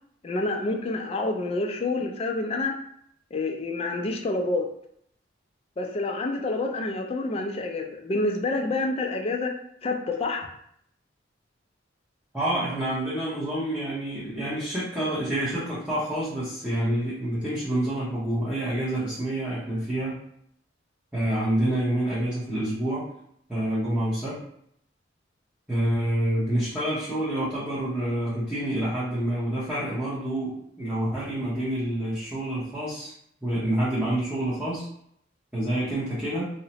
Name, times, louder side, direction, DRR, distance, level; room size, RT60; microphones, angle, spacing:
voice 1, 0.2-2.8 3.3-4.7 5.8-9.5 9.8-10.5, left 2 dB, 30° left, 3 dB, 0.3 m, -28 dB
voice 2, 12.3-20.2 21.1-23.1 23.5-24.4 25.7-33.1 33.4-34.9 35.5-36.4, right 1 dB, 5° right, -11 dB, 0.7 m, -27 dB
2.7 x 2.0 x 2.8 m, 0.69 s
head